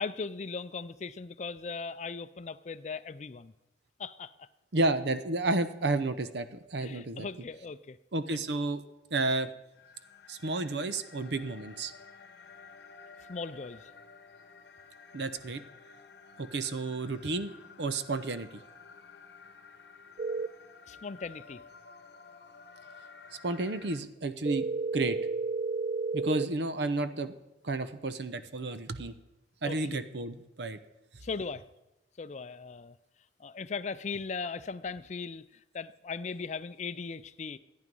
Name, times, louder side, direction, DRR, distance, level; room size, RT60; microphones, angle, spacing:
voice 1, 0.0-3.5 4.0-4.5 6.8-8.0 8.3-8.4 13.3-13.9 20.9-21.6 29.6-30.0 31.2-31.7 32.2-33.0 33.4-37.6, left 4 dB, 40° left, 15 dB, 0.4 m, -38 dB
voice 2, 4.7-7.3 8.1-8.8 9.1-9.5 10.3-11.9 15.1-15.6 16.4-17.5 17.8-18.5 23.4-24.7 24.9-25.2 26.1-27.3 27.6-29.1 29.6-30.8, right 2 dB, 65° right, 12 dB, 0.7 m, -31 dB
sound 1, 9.7-24.0, left 5 dB, 60° left, 0.9 m, -53 dB
sound 2, 20.2-20.5 24.5-26.5, right 3 dB, 45° right, 0.4 m, -31 dB
14.0 x 9.5 x 5.3 m, 0.99 s
head